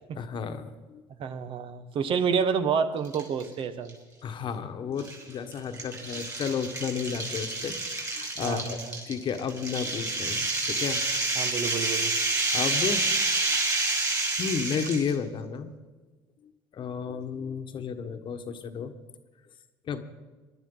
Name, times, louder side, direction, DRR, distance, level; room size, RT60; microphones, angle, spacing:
voice 1, 0.2-1.0 4.2-8.8 9.1-11.0 12.5-13.1 14.4-15.7 16.4-18.9 19.9-20.0, left 6 dB, 50° left, 1.2 m, -32 dB
voice 2, 1.2-4.0 8.4-9.0 11.4-12.2, right 6 dB, 55° right, 1.2 m, -29 dB
sound 1, 3.0-3.5 3.9-4.0 5.0-15.1, right 3 dB, 30° right, 5.1 m, -29 dB
21.0 x 11.5 x 3.9 m
supercardioid pair, 80°, 11 cm